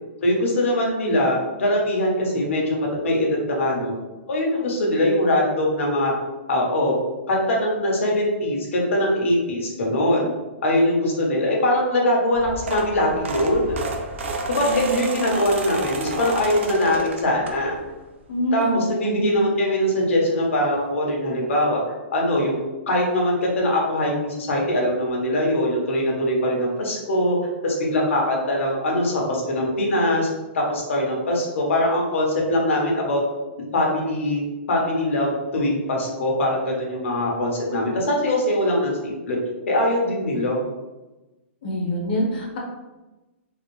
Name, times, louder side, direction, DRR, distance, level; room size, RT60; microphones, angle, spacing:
voice 1, 0.2-3.9 4.3-6.1 6.5-7.0 7.3-10.3 10.6-13.8 14.5-17.8 18.5-22.6 22.9-27.4 27.6-30.3 30.5-33.2 33.7-34.4 34.7-39.4 39.7-40.6, left 1 dB, 85° left, -2 dB, 1.2 m, -22 dB
sound 1, 12.3-18.0 18.4-18.7 19.9-20.0 20.2-20.4 20.7-20.8, right 3 dB, 70° right, 0.5 m, -30 dB
voice 2, 14.7-15.1 18.3-19.4 41.6-42.6, equal, 50° left, -1 dB, 0.8 m, -25 dB
3.9 x 2.0 x 3.1 m, 1.1 s
hypercardioid pair, 175°, 7 cm